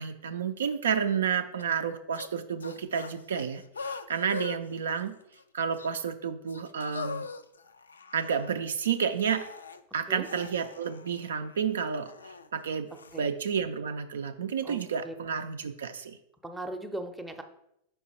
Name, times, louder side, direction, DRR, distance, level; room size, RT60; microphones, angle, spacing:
voice 1, 0.0-5.2 5.5-7.3 8.1-9.5 9.9-12.1 12.5-12.9 13.2-16.2, right 7 dB, 65° right, 8 dB, 0.3 m, -30 dB
sound 1, 1.6-1.7 2.1-2.3 2.6-4.6 4.9-5.4 5.7-5.9 6.5-8.5 9.0-9.8 10.2-12.5 12.9-13.2, left 4 dB, 75° left, 0.3 m, -42 dB
voice 2, 14.6-15.1 16.4-17.4, right 1 dB, 5° right, 4 dB, 0.6 m, -38 dB
5.4 x 4.3 x 4.2 m, 0.78 s
figure-of-eight pair, 90°, 0 cm